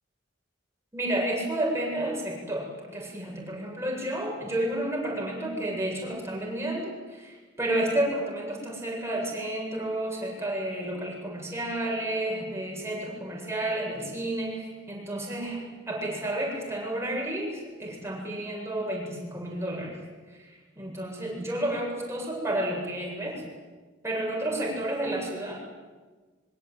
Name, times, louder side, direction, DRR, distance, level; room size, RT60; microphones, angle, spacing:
voice 1, 0.9-20.0 20.3-23.4 24.0-25.5, right 1 dB, 15° right, -1 dB, 8.0 m, -31 dB
26.0 x 23.5 x 9.5 m, 1.3 s
head